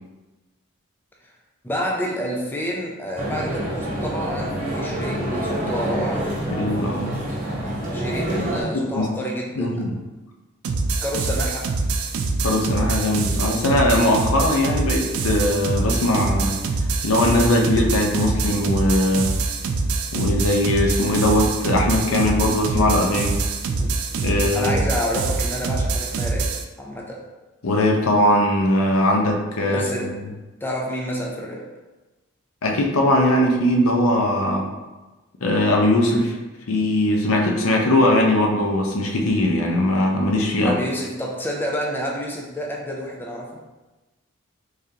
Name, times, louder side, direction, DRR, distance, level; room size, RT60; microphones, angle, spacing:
voice 1, 1.6-6.3 7.3-7.5 7.9-9.8 11.0-11.7 23.8-23.9 24.5-27.2 29.7-30.2 30.6-31.7 40.6-43.6, equal, 10° left, -1 dB, 0.3 m, -29 dB
sound 1, 3.2-8.6, right 1 dB, 40° right, 0.9 m, -27 dB
voice 2, 6.5-7.2 8.7-9.1 9.6-9.9 12.4-16.6 17.0-19.3 20.1-23.4 24.2-24.7 27.6-30.1 32.6-34.7 35.4-36.4 36.7-40.8, left 1 dB, 75° left, 1 dB, 0.6 m, -20 dB
sound 2, 10.6-26.6, right 3 dB, 75° right, 0.4 m, -24 dB
3.7 x 3.3 x 2.7 m, 1.1 s
head